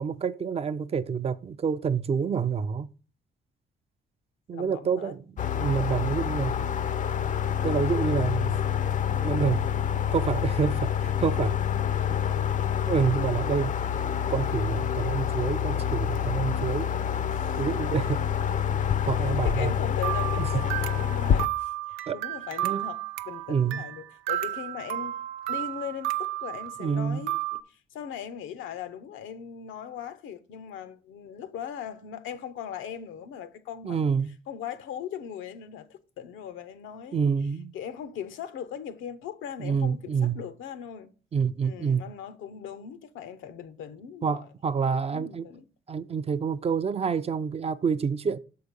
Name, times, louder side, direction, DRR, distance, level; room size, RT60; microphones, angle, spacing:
voice 1, 0.0-2.9 4.5-5.2 5.5-6.6 7.6-8.6 9.2-9.7 10.1-11.6 12.9-13.8 14.3-16.9 17.6-18.6 19.1-19.8 20.4-20.6 22.1-22.2 22.6-22.8 23.5-23.8 26.8-27.3 33.8-34.3 37.1-37.7 39.6-40.4 41.3-42.1 44.2-45.5 45.9-48.4, right 6 dB, 30° right, 0.4 m, -28 dB
voice 2, 4.5-5.2 11.8-12.6 17.3-17.7 19.1-25.2 25.5-34.1 34.5-37.3 37.7-41.1 41.6-44.5 45.1-45.6, left 8 dB, 85° left, 0.7 m, -39 dB
sound 1, 5.4-21.5, left 9 dB, 40° left, 0.4 m, -27 dB
sound 2, 20.0-27.6, right 15 dB, 90° right, 0.4 m, -32 dB
6.4 x 4.7 x 5.2 m
cardioid pair, 90°, 20 cm